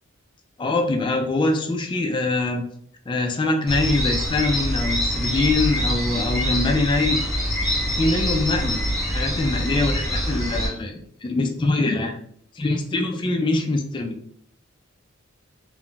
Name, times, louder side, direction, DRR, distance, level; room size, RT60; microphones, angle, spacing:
voice 1, 0.6-2.7 3.1-7.2 7.8-12.2 12.5-14.2, left 2 dB, 25° left, 4 dB, 0.3 m, -23 dB
sound 1, 3.7-10.7, equal, ahead, 1.0 m, -25 dB
2.3 x 2.1 x 3.7 m, 0.63 s
head